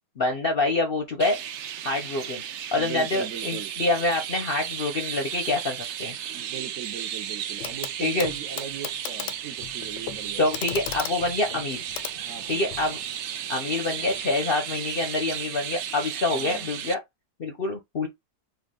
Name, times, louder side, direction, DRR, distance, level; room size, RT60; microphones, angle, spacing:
voice 1, 0.2-1.4 1.8-2.4 2.7-6.1 8.0-8.3 10.4-11.8 12.5-13.0 13.5-17.0 17.4-18.1, left 2 dB, 55° left, 0.6 m, -26 dB
Chirp tweet, 1.2-16.9, right 10 dB, 80° right, 0.6 m, -34 dB
voice 2, 2.8-3.7 6.3-10.5 12.2-12.7 16.3-16.7, right 8 dB, 60° right, 0.9 m, -39 dB
Clock, 7.6-7.9 8.2-12.9 14.1-14.2, left 11 dB, 85° left, 1.2 m, -37 dB
4.6 x 2.4 x 3.6 m
omnidirectional pair, 1.8 m